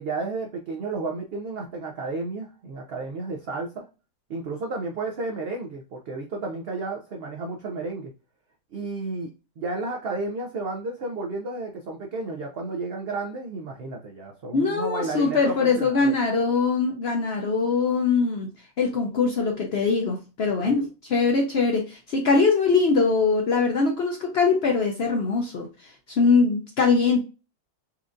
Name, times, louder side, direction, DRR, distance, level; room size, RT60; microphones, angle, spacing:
voice 1, 0.0-3.9 4.3-8.1 8.7-9.3 9.6-16.2 20.6-20.9, right 3 dB, 75° right, 1 dB, 0.5 m, -32 dB
voice 2, 14.5-18.5 18.8-25.7 26.1-27.2, left 4 dB, 65° left, 2 dB, 0.6 m, -22 dB
4.3 x 2.4 x 2.4 m, 0.33 s
omnidirectional pair, 1.6 m